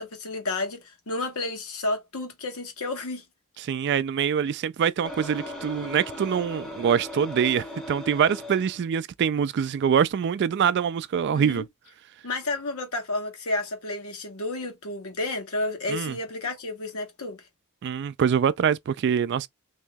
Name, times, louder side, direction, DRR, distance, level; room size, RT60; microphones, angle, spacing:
voice 1, 0.0-3.2 11.3-11.6 12.2-17.4, left 2 dB, 75° left, 1.2 m, -31 dB
voice 2, 3.6-11.7 15.9-16.2 17.8-19.5, right 7 dB, 50° right, 0.3 m, -24 dB
sound 1, 5.0-8.8, left 1 dB, 5° left, 0.7 m, -38 dB
3.0 x 2.7 x 3.4 m
head